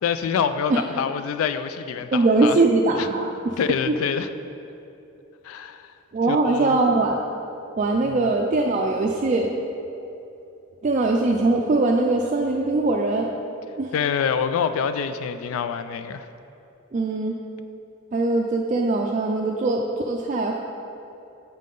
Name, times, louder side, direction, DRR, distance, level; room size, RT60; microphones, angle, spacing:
voice 1, 0.0-2.6 3.0-3.1 3.6-4.3 5.4-5.9 6.3-6.8 8.0-8.2 13.9-16.3, left 7 dB, 90° left, 11 dB, 0.3 m, -26 dB
voice 2, 2.1-3.6 3.9-4.0 6.1-7.2 7.8-9.5 10.8-13.3 13.8-13.9 16.9-17.3 18.1-20.6, right 2 dB, 35° right, 0 dB, 0.4 m, -21 dB
7.4 x 5.5 x 3.8 m, 2.9 s
head